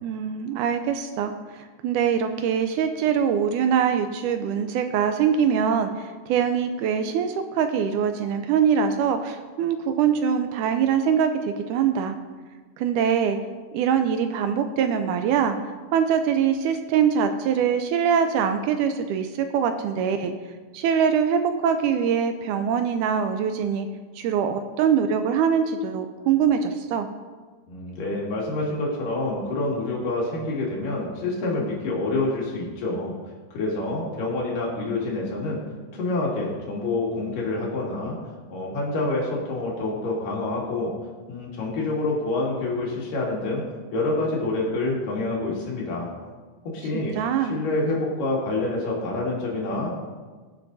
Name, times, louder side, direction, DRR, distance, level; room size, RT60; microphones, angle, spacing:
voice 1, 0.0-12.2 12.8-13.4 13.7-15.6 15.9-20.3 20.7-23.9 24.2-27.1 46.9-47.6, right 7 dB, 80° right, 8 dB, 1.9 m, -23 dB
voice 2, 27.7-33.2 33.5-35.6 35.9-38.2 38.5-40.9 41.3-43.6 43.9-46.1 46.7-47.2 47.4-50.0, left 2 dB, 75° left, -3 dB, 3.6 m, -27 dB
19.5 x 6.8 x 2.6 m, 1.4 s
omnidirectional pair, 3.9 m